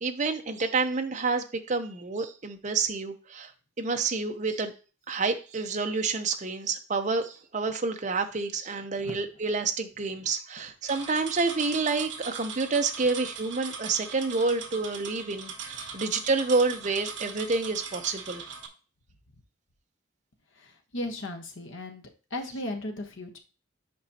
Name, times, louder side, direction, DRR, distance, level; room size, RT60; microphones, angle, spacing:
voice 1, 0.0-3.5 3.8-4.7 5.1-18.4, right 4 dB, 40° right, 6 dB, 0.7 m, -28 dB
sound 1, 10.9-18.7, right 5 dB, 65° right, 1.0 m, -40 dB
voice 2, 20.5-22.0 22.3-23.4, left 1 dB, 75° left, 3 dB, 1.2 m, -36 dB
7.7 x 5.2 x 2.8 m, 0.34 s
head